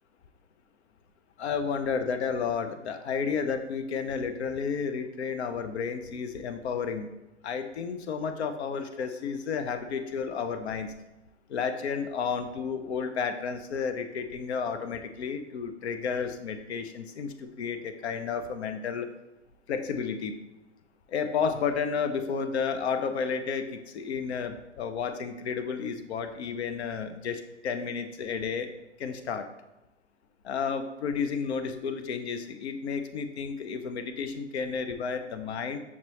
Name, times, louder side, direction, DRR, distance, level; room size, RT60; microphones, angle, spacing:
voice 1, 1.4-7.1 7.4-10.9 11.5-19.1 19.7-20.4 21.1-28.7 29.0-29.5 30.4-35.8, left 6 dB, 60° left, 9 dB, 0.6 m, -32 dB
5.9 x 3.1 x 2.8 m, 0.97 s
hypercardioid pair, 155°, 37 cm